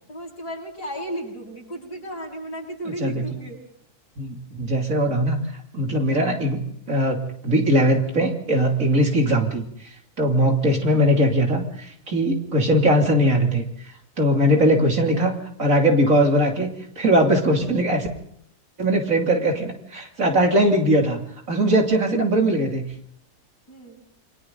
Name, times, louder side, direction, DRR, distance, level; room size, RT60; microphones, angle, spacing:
voice 1, 0.1-3.6 23.7-24.0, right 1 dB, 75° left, -2 dB, 8.4 m, -34 dB
voice 2, 2.8-3.3 4.2-5.4 5.7-9.6 10.2-18.1 18.8-21.2 21.5-22.9, equal, 55° right, 2 dB, 3.3 m, -20 dB
29.0 x 23.0 x 4.0 m, 0.70 s
omnidirectional pair, 1.7 m